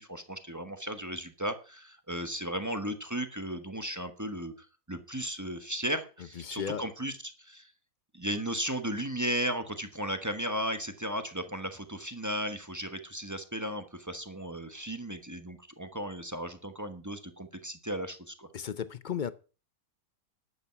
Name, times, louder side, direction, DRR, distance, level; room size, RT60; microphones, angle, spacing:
voice 1, 0.0-7.7 8.1-18.5, equal, 15° right, 1.0 m, -35 dB
voice 2, 6.4-6.8 18.5-19.3, left 8 dB, 55° left, 0.5 m, -34 dB
11.0 x 8.5 x 5.8 m
omnidirectional pair, 1.6 m